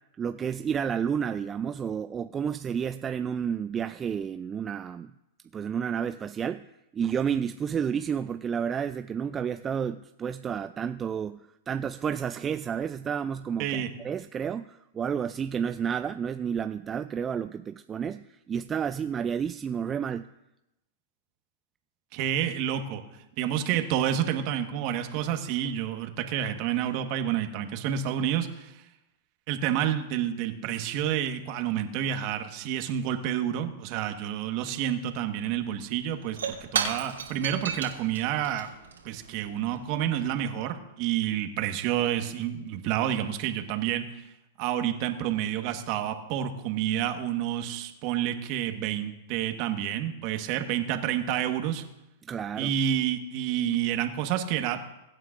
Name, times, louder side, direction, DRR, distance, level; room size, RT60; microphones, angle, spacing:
voice 1, 0.2-5.1 5.5-6.7 6.9-20.3 52.2-52.7, right 7 dB, 25° right, 10 dB, 0.3 m, -31 dB
voice 2, 22.1-23.0 23.4-28.7 29.5-38.7 39.0-44.2 44.6-51.8 52.6-54.8, right 10 dB, 50° right, 6 dB, 1.4 m, -29 dB
Shatter / Crushing, 35.4-35.5 35.7-40.6, right 6 dB, 90° right, 3.0 m, -35 dB
23.5 x 9.1 x 2.6 m, 0.93 s
hypercardioid pair, 115°, 0 cm